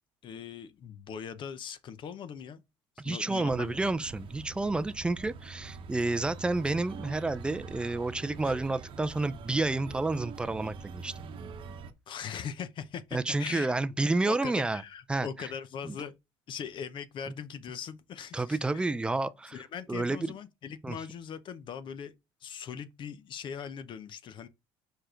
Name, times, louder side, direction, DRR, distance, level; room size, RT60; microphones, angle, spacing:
voice 1, 0.2-2.6 3.0-3.8 8.4-8.5 12.1-13.7 14.3-16.1 16.5-18.8 19.5-22.1 22.4-24.5, left 7 dB, 45° left, 0.7 m, -40 dB
voice 2, 3.0-11.1 13.1-14.8 15.1-15.3 15.8-16.0 18.3-19.6 19.9-20.2 20.8-21.0, right 2 dB, 10° right, 0.4 m, -30 dB
sound 1, 3.5-11.9, right 5 dB, 50° right, 0.9 m, -44 dB
5.1 x 4.6 x 4.4 m
cardioid pair, 105°, 11 cm